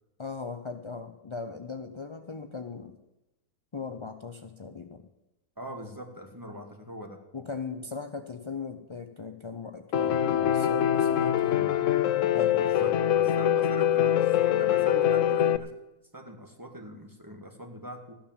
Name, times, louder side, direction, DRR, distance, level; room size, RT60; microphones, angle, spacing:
voice 1, 0.2-3.0 3.7-5.1 7.3-11.8 12.3-12.9, left 4 dB, 45° left, 6 dB, 0.3 m, -39 dB
voice 2, 5.6-7.2 12.5-15.7 16.1-18.1, equal, 15° right, 4 dB, 1.7 m, -42 dB
Piano, 9.9-15.6, left 10 dB, 60° left, 1.0 m, -24 dB
14.5 x 10.0 x 7.3 m, 0.97 s
omnidirectional pair, 1.6 m